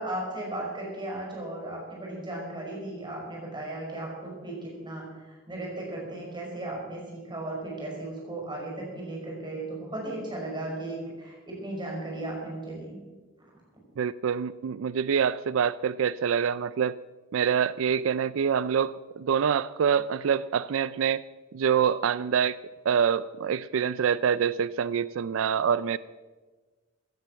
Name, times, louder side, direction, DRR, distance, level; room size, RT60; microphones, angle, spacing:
voice 1, 0.0-13.0 13.4-13.5, right 1 dB, 25° right, -2 dB, 5.5 m, -36 dB
voice 2, 14.0-17.0 17.3-21.2 21.5-22.6 22.9-26.0, right 7 dB, 90° right, 17 dB, 0.4 m, -26 dB
16.0 x 10.5 x 7.4 m, 1.3 s
head